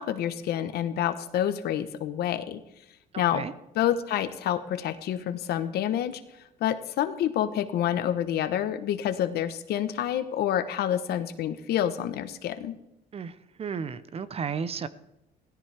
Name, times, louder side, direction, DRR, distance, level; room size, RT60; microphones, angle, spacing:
voice 1, 0.0-2.6 3.2-3.5 3.7-6.2 6.6-12.8, left 10 dB, 70° left, 12 dB, 1.0 m, -28 dB
voice 2, 3.1-3.5 13.1-14.9, right 6 dB, 35° right, 15 dB, 0.7 m, -34 dB
16.5 x 14.5 x 3.5 m, 0.87 s
cardioid pair, 110°, 17 cm